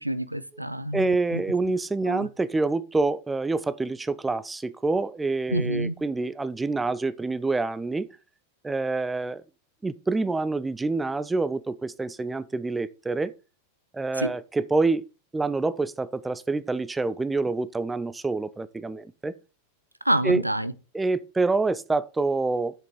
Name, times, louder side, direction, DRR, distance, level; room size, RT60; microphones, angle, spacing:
voice 1, 0.0-1.4 2.1-2.3 5.5-5.9 14.2-14.3 20.1-20.7, right 1 dB, 85° right, 0.5 m, -27 dB
voice 2, 0.9-8.1 8.6-9.4 9.8-13.3 13.9-15.0 15.3-19.4 20.2-20.4 20.9-22.8, right 3 dB, 10° right, 0.5 m, -27 dB
7.3 x 6.3 x 4.7 m
figure-of-eight pair, 90°, 0 cm